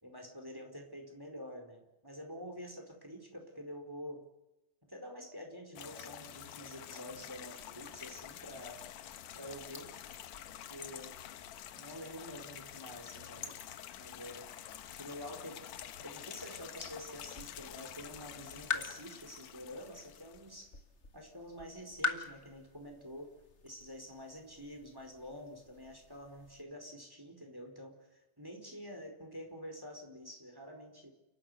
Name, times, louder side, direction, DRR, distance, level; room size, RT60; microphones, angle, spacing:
voice 1, 0.0-4.2 4.9-8.8 9.3-9.9 10.7-11.1 11.7-13.6 14.0-14.5 15.0-20.7 21.1-23.3 23.6-31.1, equal, 5° right, 3 dB, 4.4 m, -48 dB
sound 1, 5.8-20.6, left 11 dB, 65° left, 2.0 m, -48 dB
sound 2, 7.1-26.6, left 3 dB, 30° left, 1.4 m, -47 dB
30.0 x 12.5 x 9.6 m, 0.98 s
omnidirectional pair, 3.9 m